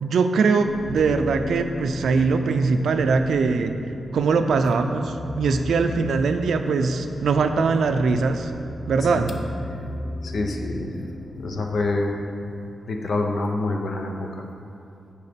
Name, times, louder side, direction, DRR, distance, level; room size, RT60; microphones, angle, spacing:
voice 1, 0.0-3.7 4.1-8.5 8.9-9.3, right 4 dB, 85° right, 8 dB, 0.4 m, -21 dB
sound 1, 0.6-12.5, left 2 dB, 40° left, 1.7 m, -37 dB
voice 2, 9.0-9.4 10.2-10.9 11.4-12.1 12.4-12.5 12.9-14.4, left 2 dB, 60° left, 2 dB, 0.7 m, -27 dB
6.9 x 4.8 x 5.1 m, 2.7 s
wide cardioid pair, 155°, 0 cm